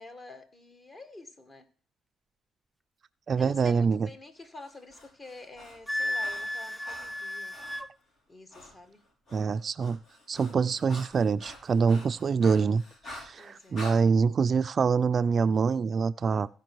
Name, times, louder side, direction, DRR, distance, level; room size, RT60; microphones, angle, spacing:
voice 1, 0.0-1.7 3.4-7.6 8.3-9.0 13.4-13.9, left 2 dB, 30° left, 8 dB, 1.8 m, -48 dB
voice 2, 3.3-4.1 9.3-10.0 10.3-16.5, right 5 dB, 45° right, 13 dB, 0.4 m, -25 dB
Breathing, 4.6-7.8 8.5-8.7 9.0-14.0, left 1 dB, 60° left, 4.3 m, -47 dB
Wind instrument woodwind instrument, 5.9-7.9, left 1 dB, 5° left, 0.6 m, -33 dB
15.5 x 5.2 x 4.6 m, 0.42 s
cardioid pair, 90°, 0 cm